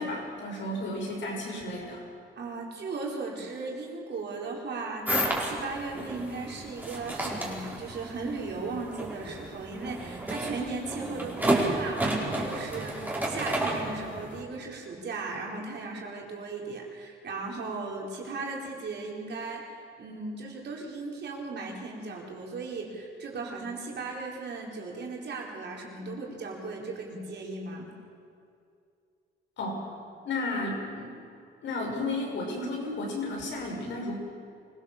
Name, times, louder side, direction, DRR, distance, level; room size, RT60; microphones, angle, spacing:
voice 1, 0.0-2.0 29.6-29.9 30.2-31.1 31.6-34.2, left 2 dB, 70° left, 0 dB, 6.2 m, -33 dB
voice 2, 2.4-27.9, right 3 dB, 60° right, -1 dB, 4.7 m, -37 dB
sound 1, 5.1-14.4, right 1 dB, 10° right, 4.6 m, -31 dB
24.5 x 16.5 x 7.4 m, 2.4 s
cardioid pair, 90°, 20 cm